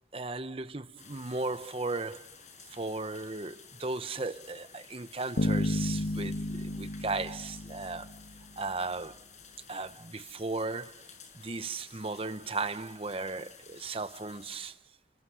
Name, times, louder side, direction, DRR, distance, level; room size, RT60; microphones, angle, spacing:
voice 1, 0.1-2.3 2.7-8.2 8.6-9.2 9.7-11.1 11.3-14.8, right 3 dB, 30° right, 0.9 m, -36 dB
sound 1, 1.0-14.7, left 6 dB, 40° left, 6.7 m, -53 dB
Bass guitar, 5.4-8.5, left 1 dB, 65° left, 1.3 m, -32 dB
29.5 x 24.5 x 6.4 m
head